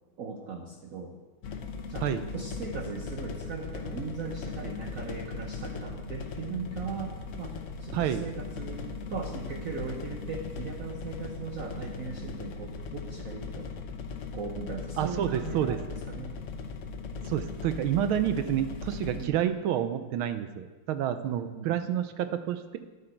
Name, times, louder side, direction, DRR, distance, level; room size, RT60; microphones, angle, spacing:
voice 1, 0.2-1.2 1.9-2.1 2.3-13.7 14.3-16.3 19.1-19.5 21.3-21.9, right 4 dB, 60° right, 2 dB, 0.9 m, -39 dB
sound 1, 1.4-19.3, left 4 dB, 80° left, 0.7 m, -38 dB
voice 2, 7.9-8.2 15.0-15.8 17.3-22.8, right 10 dB, 80° right, 10 dB, 1.4 m, -29 dB
11.0 x 7.9 x 4.5 m, 1.3 s
omnidirectional pair, 2.3 m